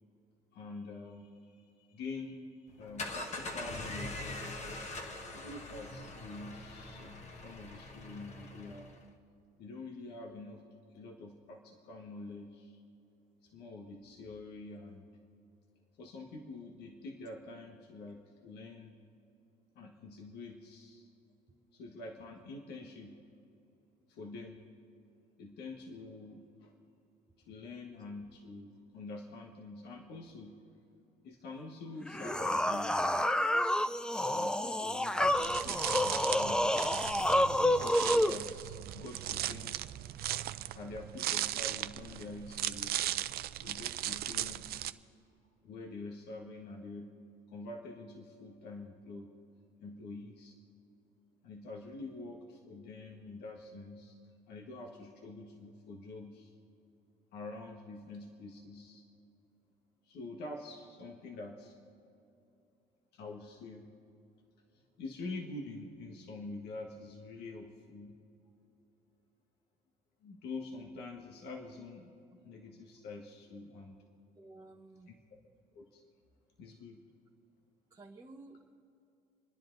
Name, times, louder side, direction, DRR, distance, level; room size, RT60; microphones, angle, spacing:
voice 1, 0.5-8.9 9.6-10.6 10.9-12.8 13.4-15.0 16.0-18.9 19.7-21.1 21.7-23.2 24.1-24.6 25.4-26.7 27.5-30.6 31.2-33.1 34.2-39.8 40.7-43.2 43.6-44.7 45.6-47.1 47.5-49.3 49.8-50.6 51.4-54.2 54.5-56.5 57.3-59.0 60.0-61.8 63.1-63.9 64.7-68.2 70.2-73.9 75.1-75.2 75.7-76.0 76.6-77.0, left 3 dB, 75° left, 1 dB, 1.6 m, -46 dB
sound 1, 2.7-9.1, left 2 dB, 40° left, 1.7 m, -43 dB
sound 2, 32.0-38.4, left 1 dB, 5° left, 0.5 m, -29 dB
sound 3, 35.2-44.9, right 13 dB, 65° right, 0.5 m, -37 dB
voice 2, 74.4-75.1 77.9-78.8, right 2 dB, 20° right, -1 dB, 1.0 m, -53 dB
28.0 x 10.5 x 4.0 m, 2.7 s
cardioid pair, 110°, 17 cm